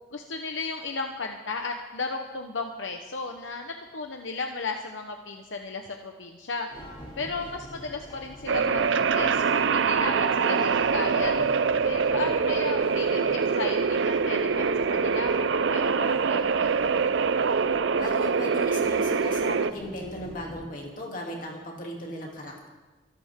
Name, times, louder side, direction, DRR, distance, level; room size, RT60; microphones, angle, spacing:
voice 1, 0.1-6.7 7.2-11.3 11.8-17.0, left 3 dB, 85° left, 4 dB, 1.1 m, -35 dB
sound 1, 6.7-20.6, equal, 30° left, 3.1 m, -46 dB
sound 2, 8.5-19.7, right 5 dB, 75° right, 0.5 m, -24 dB
voice 2, 17.9-22.7, equal, 45° left, -1 dB, 3.0 m, -37 dB
24.0 x 12.0 x 3.8 m, 1.2 s
head